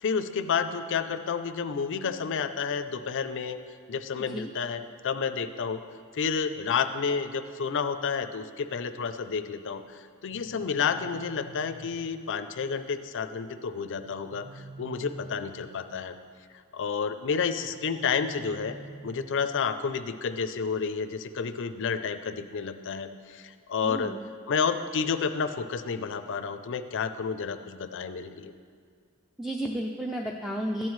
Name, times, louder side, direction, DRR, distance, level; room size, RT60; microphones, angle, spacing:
voice 1, 0.0-3.6 3.9-5.8 6.1-16.1 16.7-18.8 19.0-24.1 24.5-28.5, left 6 dB, 60° left, 10 dB, 0.5 m, -30 dB
sound 1, 10.3-12.3 13.9-16.0 17.6-19.7, right 2 dB, 70° right, 1.3 m, -47 dB
voice 2, 23.8-24.2 29.4-30.9, right 1 dB, ahead, 0 dB, 0.4 m, -32 dB
13.5 x 9.1 x 3.1 m, 2.2 s
head